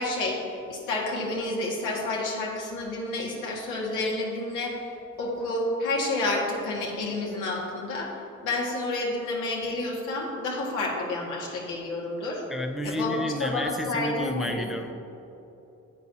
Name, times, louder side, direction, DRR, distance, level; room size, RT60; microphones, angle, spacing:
voice 1, 0.0-4.9 5.2-8.1 8.4-12.4 12.8-14.8, left 2 dB, 90° left, -3 dB, 1.8 m, -30 dB
voice 2, 12.5-14.9, left 1 dB, ahead, 5 dB, 0.5 m, -31 dB
10.5 x 8.2 x 2.7 m, 2.9 s
cardioid pair, 90°, 30 cm